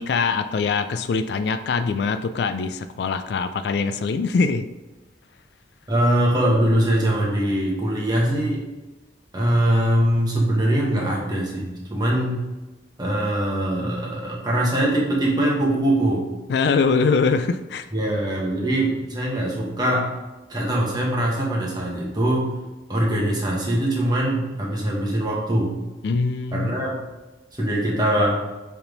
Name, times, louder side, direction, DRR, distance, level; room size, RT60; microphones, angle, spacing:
voice 1, 0.0-4.7 16.5-17.9 26.0-26.8, left 4 dB, 65° left, 11 dB, 0.3 m, -23 dB
voice 2, 5.9-8.6 9.3-12.4 13.0-16.3 17.9-20.1 20.5-22.5 22.9-25.7 26.5-27.0 27.6-28.4, right 1 dB, 20° right, -3 dB, 1.3 m, -22 dB
7.1 x 3.5 x 3.9 m, 1.1 s
head